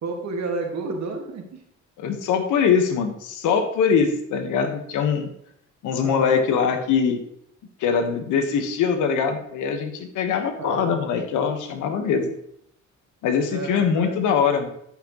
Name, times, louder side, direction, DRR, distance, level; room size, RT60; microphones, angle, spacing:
voice 1, 0.0-1.6 5.9-6.4 10.6-10.9 13.5-14.2, right 3 dB, 65° right, 3 dB, 1.8 m, -31 dB
voice 2, 2.0-5.3 5.8-7.2 7.8-12.3 13.2-14.7, left 6 dB, 90° left, 6 dB, 1.3 m, -22 dB
11.5 x 5.8 x 3.0 m, 0.71 s
cardioid pair, 90°, 30 cm